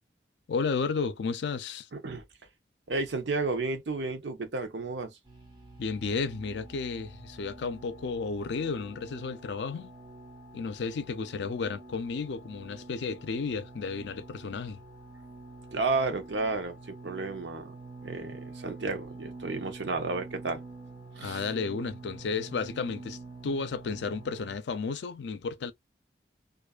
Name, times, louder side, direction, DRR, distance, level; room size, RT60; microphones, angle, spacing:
voice 1, 0.5-1.9 5.8-9.9 10.5-14.8 21.2-23.2 23.4-25.7, left 4 dB, 75° left, 0.4 m, -33 dB
voice 2, 1.9-2.2 2.9-5.2 15.7-17.8 18.0-20.6 21.2-21.4, right 3 dB, 90° right, 0.8 m, -32 dB
sound 1, 5.3-24.6, right 3 dB, 25° right, 0.9 m, -47 dB
2.5 x 2.4 x 2.2 m
head